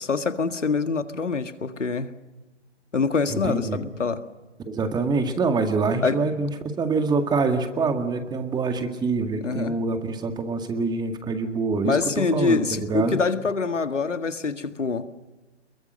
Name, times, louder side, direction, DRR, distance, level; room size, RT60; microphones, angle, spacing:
voice 1, 0.0-2.1 2.9-4.2 6.0-6.2 9.4-9.8 11.8-15.1, left 4 dB, 85° left, 10 dB, 1.9 m, -25 dB
voice 2, 3.3-3.8 4.6-13.2, right 4 dB, 10° right, 7 dB, 2.0 m, -25 dB
29.0 x 22.5 x 6.5 m, 1.1 s
figure-of-eight pair, 125°, 36 cm